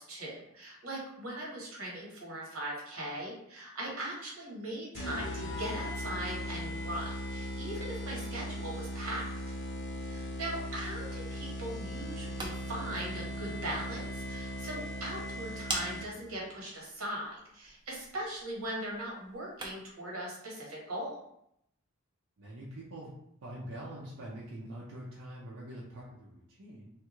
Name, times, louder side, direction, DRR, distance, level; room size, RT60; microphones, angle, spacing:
voice 1, 0.0-9.3 10.0-21.2, right 1 dB, 90° right, -3 dB, 1.2 m, -40 dB
sound 1, 4.9-16.3, equal, 60° left, 0.6 m, -38 dB
sound 2, 12.1-20.0, right 2 dB, 20° right, 0.5 m, -45 dB
voice 2, 22.4-23.1 23.4-26.9, right 1 dB, 65° right, -6 dB, 0.6 m, -44 dB
3.2 x 2.3 x 3.0 m, 0.75 s
head